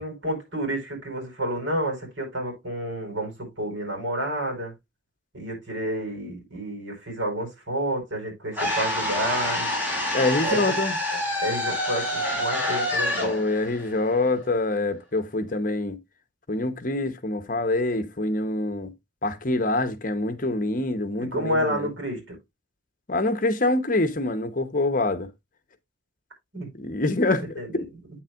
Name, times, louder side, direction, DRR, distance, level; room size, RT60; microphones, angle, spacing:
voice 1, 0.0-4.7 5.3-9.7 10.4-10.6 11.4-13.3 21.2-22.4 26.5-26.7 27.6-27.8, right 1 dB, 85° right, 5.0 m, -30 dB
sound 1, 8.5-14.6, left 1 dB, 10° right, 5.2 m, -27 dB
voice 2, 10.1-11.0 13.2-16.0 16.5-18.9 19.2-21.9 23.1-25.3 26.8-27.9, left 2 dB, 45° left, 1.0 m, -25 dB
8.7 x 7.3 x 2.5 m
head